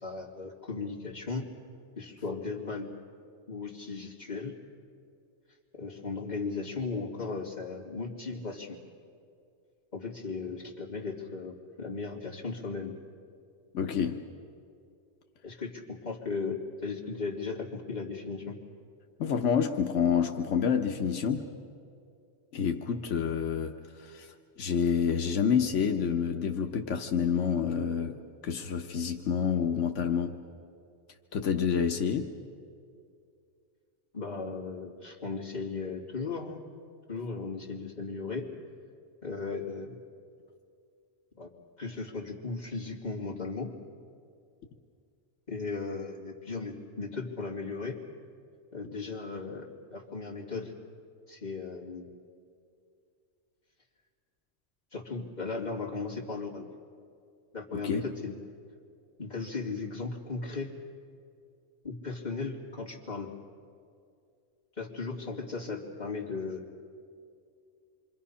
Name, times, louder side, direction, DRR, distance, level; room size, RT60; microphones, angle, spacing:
voice 1, 0.0-1.5 2.0-2.9 3.5-4.5 5.7-8.8 9.9-12.9 15.4-18.6 34.1-36.6 37.1-38.5 39.2-40.0 41.4-41.5 41.8-43.7 45.5-48.0 48.7-50.7 51.3-52.1 54.9-56.7 57.5-58.4 59.2-60.7 61.8-63.3 64.8-66.6, left 4 dB, 35° left, -3 dB, 2.8 m, -36 dB
voice 2, 13.7-14.2 19.2-21.4 22.5-24.3 24.6-28.2 28.4-30.3 31.3-32.3 57.7-58.0, left 7 dB, 85° left, 4 dB, 1.3 m, -28 dB
27.0 x 24.5 x 5.7 m, 2.4 s
omnidirectional pair, 1.2 m